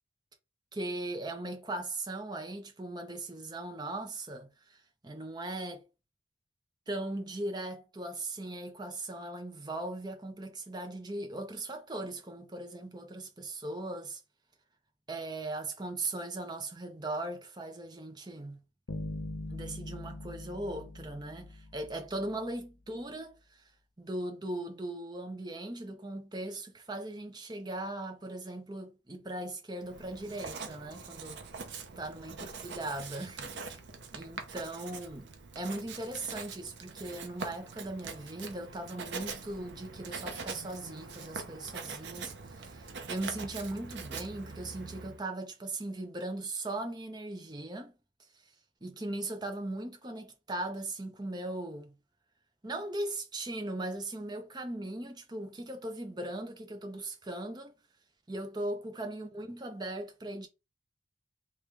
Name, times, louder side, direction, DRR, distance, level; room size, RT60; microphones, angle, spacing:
voice 1, 0.7-5.8 6.9-14.2 15.1-18.6 19.5-23.6 24.0-31.4 32.0-33.8 34.1-35.3 35.5-47.9 48.8-52.0 52.6-57.8 58.3-60.5, right 2 dB, 20° right, 0.7 m, -39 dB
sound 1, 18.9-22.3, left 1 dB, 80° left, 0.9 m, -42 dB
Writing, 29.8-45.2, right 4 dB, 60° right, 0.6 m, -43 dB
3.1 x 3.0 x 3.4 m
head